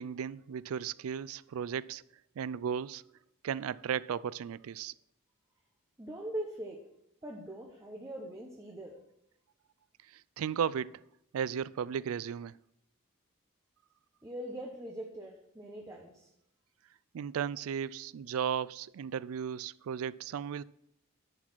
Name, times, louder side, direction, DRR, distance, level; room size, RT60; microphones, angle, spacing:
voice 1, 0.0-2.0 2.4-3.0 3.4-4.9 10.4-11.0 11.3-12.5 17.1-20.6, right 8 dB, 75° right, 0.3 m, -35 dB
voice 2, 6.0-6.9 7.2-9.0 14.2-16.3, right 1 dB, 15° right, 1.0 m, -42 dB
11.0 x 4.8 x 6.1 m
head